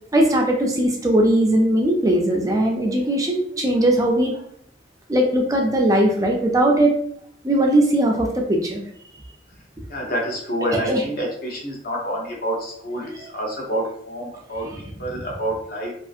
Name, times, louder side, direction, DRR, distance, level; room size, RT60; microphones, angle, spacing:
voice 1, 0.1-4.3 5.1-6.9 7.4-8.8 10.9-11.0, right 1 dB, 20° right, 1 dB, 0.3 m, -19 dB
voice 2, 9.9-15.9, right 1 dB, 50° left, -2 dB, 0.8 m, -28 dB
2.6 x 2.4 x 2.4 m, 0.67 s
head